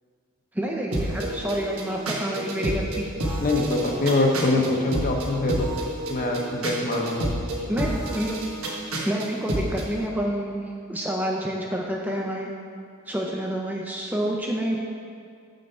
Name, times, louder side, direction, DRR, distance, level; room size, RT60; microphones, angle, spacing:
voice 1, 0.5-3.1 7.7-8.4 9.0-10.6 10.9-12.5 13.1-14.8, right 1 dB, 10° right, -1 dB, 0.4 m, -28 dB
sound 1, 0.9-9.9, right 1 dB, 70° right, 1.2 m, -30 dB
voice 2, 3.4-5.7 6.1-7.4, left 2 dB, 40° left, 1 dB, 0.8 m, -24 dB
7.0 x 5.3 x 4.4 m, 2.3 s
head